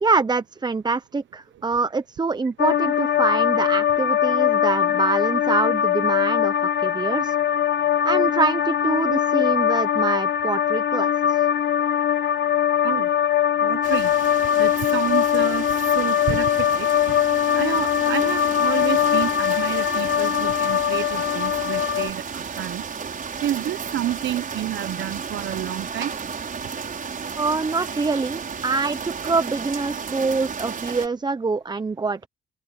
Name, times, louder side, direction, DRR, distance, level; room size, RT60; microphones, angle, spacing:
voice 1, 0.0-6.5 6.8-7.4 8.0-11.5 27.4-32.3, right 4 dB, 20° right, 0.8 m, -25 dB
sound 1, 2.6-22.1, left 10 dB, 60° left, 1.3 m, -21 dB
voice 2, 13.6-14.1 14.6-16.9 17.5-22.8 23.4-26.1, right 12 dB, 70° right, 1.0 m, -29 dB
sound 2, 13.8-31.1, right 6 dB, 45° right, 6.4 m, -33 dB
open air
cardioid pair, 90°, 20 cm